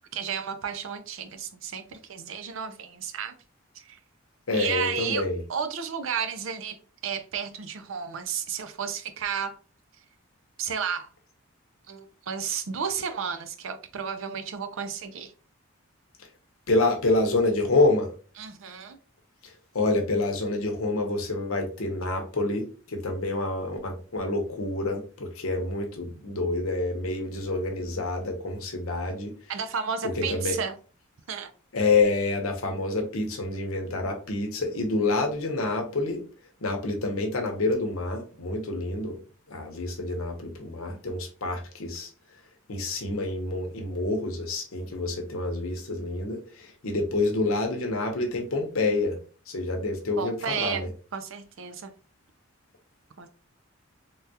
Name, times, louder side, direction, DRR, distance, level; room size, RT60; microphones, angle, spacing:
voice 1, 0.1-3.3 3.8-4.0 4.5-6.8 7.0-9.6 10.6-11.1 11.9-15.3 18.4-19.0 29.5-30.7 31.3-31.5 50.2-50.9 51.1-51.9 53.2-53.3, right 7 dB, 65° right, 0.5 m, -32 dB
voice 2, 4.5-5.4 16.7-18.1 19.7-29.3 30.2-30.6 31.7-36.2 36.6-39.2 39.5-42.1 42.7-49.2 49.5-50.9, left 2 dB, 75° left, 0.8 m, -27 dB
3.4 x 2.3 x 2.7 m
head